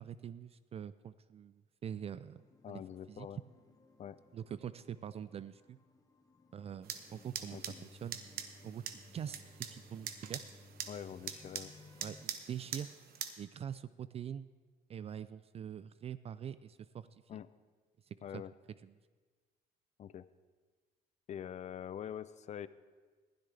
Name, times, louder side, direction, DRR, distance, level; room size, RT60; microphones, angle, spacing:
voice 1, 0.0-2.8 3.1-3.3 4.3-5.8 6.5-8.2 8.6-10.4 12.0-12.9 13.4-14.5 14.9-17.1 18.1-18.4 18.8-18.9, right 9 dB, 35° right, 15 dB, 0.4 m, -44 dB
sound 1, 2.0-12.3, left 2 dB, 20° left, 1.1 m, -60 dB
voice 2, 2.6-3.4 4.0-4.2 7.5-7.9 10.9-11.7 17.3-17.5 18.2-18.5 20.0-20.3 21.3-22.7, left 9 dB, 45° left, 15 dB, 0.5 m, -45 dB
sound 2, 6.8-13.3, right 8 dB, 65° right, 1.1 m, -45 dB
20.0 x 12.0 x 3.4 m, 1.4 s
cardioid pair, 110°, 17 cm